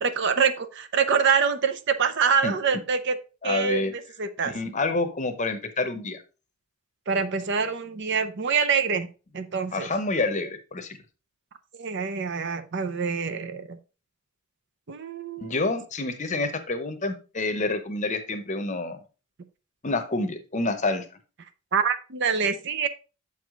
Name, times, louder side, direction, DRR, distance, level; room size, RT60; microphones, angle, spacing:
voice 1, 0.0-3.2 3.4-4.5 7.1-9.1 9.3-9.9 11.8-13.8 14.9-15.7 21.7-22.9, right 6 dB, 50° right, 10 dB, 0.6 m, -25 dB
voice 2, 3.4-3.9 4.4-6.2 9.7-11.0 15.4-19.0 19.8-21.0, left 2 dB, 35° left, 8 dB, 0.8 m, -28 dB
7.1 x 4.7 x 3.7 m, 0.33 s
head